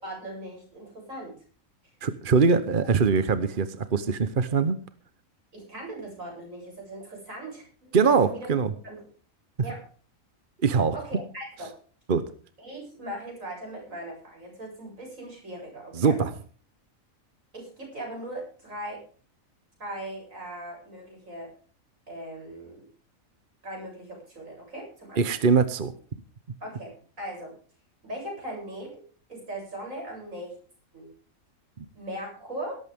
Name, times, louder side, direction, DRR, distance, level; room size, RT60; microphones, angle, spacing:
voice 1, 0.0-1.3 5.5-8.5 8.8-9.0 9.6-9.8 10.9-11.7 12.6-16.2 17.5-19.0 19.8-21.5 22.1-22.9 23.6-25.2 26.6-27.6 28.0-29.0 29.3-30.6 30.9-31.1 31.9-32.8, right 1 dB, 70° right, 0 dB, 8.5 m, -39 dB
voice 2, 2.0-4.8 7.9-8.7 10.6-11.0 12.1-12.2 15.9-16.3 25.2-25.9 31.8-31.9, right 5 dB, 40° right, 12 dB, 1.0 m, -22 dB
18.0 x 13.5 x 3.6 m, 0.42 s
omnidirectional pair, 1.5 m